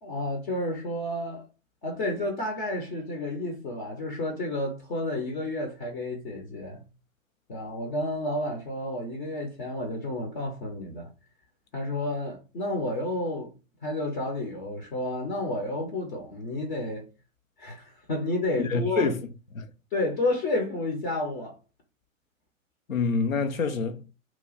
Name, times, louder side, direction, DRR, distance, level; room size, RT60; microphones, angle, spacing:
voice 1, 0.0-1.5 1.8-6.8 7.5-11.1 11.7-13.5 13.8-17.0 17.6-19.1 19.9-21.6, left 1 dB, 35° left, 0.8 m, -31 dB
voice 2, 18.6-19.2 19.5-19.7 22.9-24.1, left 4 dB, 80° left, 0.6 m, -26 dB
3.0 x 2.3 x 3.9 m
figure-of-eight pair, 105°, 40 cm